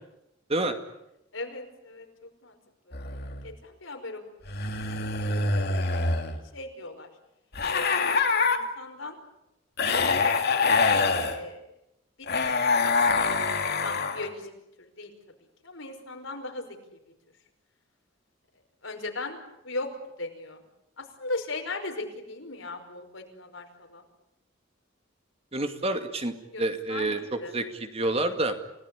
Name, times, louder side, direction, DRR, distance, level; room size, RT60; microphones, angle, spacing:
voice 1, 1.3-2.1 2.4-2.6 2.9-3.0 3.4-4.2 5.2-7.1 7.7-8.1 8.5-9.2 9.9-10.7 11.2-11.6 12.2-12.6 12.8-14.5 14.8-15.1 15.6-17.0 18.8-19.4 19.6-19.9 20.2-20.6 21.0-24.0 26.5-27.5 28.2-28.3, left 2 dB, 80° left, 4 dB, 5.4 m, -38 dB
sound 1, 2.9-3.5 4.4-6.4 7.5-8.6 9.8-11.4 12.3-14.3, left 4 dB, 55° left, 2.8 m, -25 dB
voice 2, 25.5-28.5, right 2 dB, 30° right, 7 dB, 2.3 m, -28 dB
29.5 x 18.5 x 10.0 m, 0.88 s
head